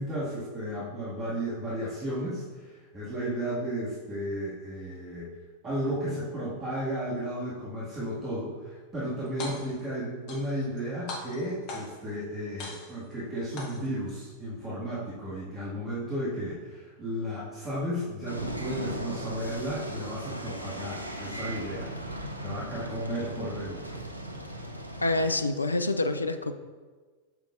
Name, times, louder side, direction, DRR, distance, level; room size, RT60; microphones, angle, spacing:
voice 1, 0.0-5.3 5.6-24.0, equal, 20° right, -9 dB, 1.8 m, -34 dB
sound 1, 9.3-9.9 10.3-10.8 11.1-12.1 12.6-13.1 13.6-14.1, left 2 dB, 45° left, 1.5 m, -40 dB
sound 2, 18.3-25.4, right 1 dB, 85° right, 0.7 m, -38 dB
voice 2, 25.0-26.5, left 2 dB, 80° left, 9 dB, 0.3 m, -27 dB
7.9 x 6.5 x 2.5 m, 1.4 s
figure-of-eight pair, 90°, 0 cm